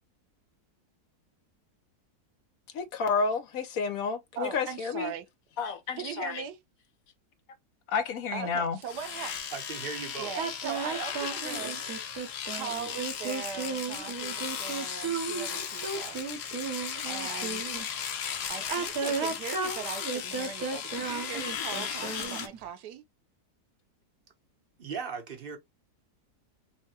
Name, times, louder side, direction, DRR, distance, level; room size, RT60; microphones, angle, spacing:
voice 1, 2.7-5.1 5.6-6.4 7.9-8.8, left 5 dB, 65° left, 1.1 m, -30 dB
voice 2, 4.4-5.3 6.0-6.6 8.3-9.3 10.2-16.5 17.0-17.7 18.5-23.0, right 8 dB, 90° right, 1.3 m, -40 dB
Domestic sounds home sounds, 8.8-22.5, left 8 dB, 85° left, 1.4 m, -36 dB
voice 3, 9.5-10.3 24.8-25.6, right 5 dB, 40° right, 1.0 m, -37 dB
sound 1, 10.4-17.9 18.6-22.6, right 5 dB, 65° right, 1.4 m, -34 dB
5.7 x 2.2 x 2.8 m
omnidirectional pair, 1.7 m